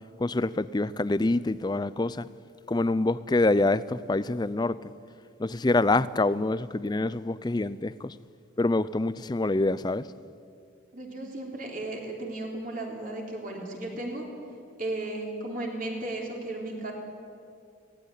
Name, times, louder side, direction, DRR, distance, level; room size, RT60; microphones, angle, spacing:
voice 1, 0.2-2.3 2.7-4.8 5.4-8.2 8.6-10.1, left 2 dB, 20° left, 0.4 m, -26 dB
voice 2, 10.9-14.2 14.8-16.9, right 2 dB, 40° right, 3.5 m, -35 dB
17.5 x 17.0 x 9.9 m
head